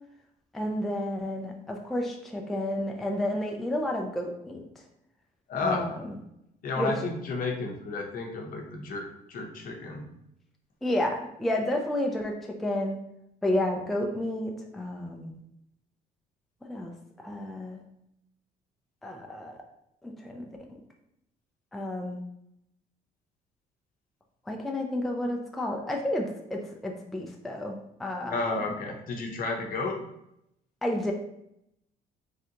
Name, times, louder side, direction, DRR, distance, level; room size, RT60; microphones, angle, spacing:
voice 1, 0.5-4.6 5.6-5.9 6.8-6.9 10.8-13.0 13.4-15.3 16.6-17.8 19.0-19.6 20.0-20.5 21.7-22.2 24.5-28.4 30.8-31.1, left 1 dB, ahead, 1 dB, 0.3 m, -31 dB
voice 2, 5.5-5.8 6.6-10.1 28.3-30.0, left 3 dB, 55° left, 2 dB, 0.7 m, -32 dB
3.3 x 2.5 x 2.8 m, 0.79 s
cardioid pair, 110°, 17 cm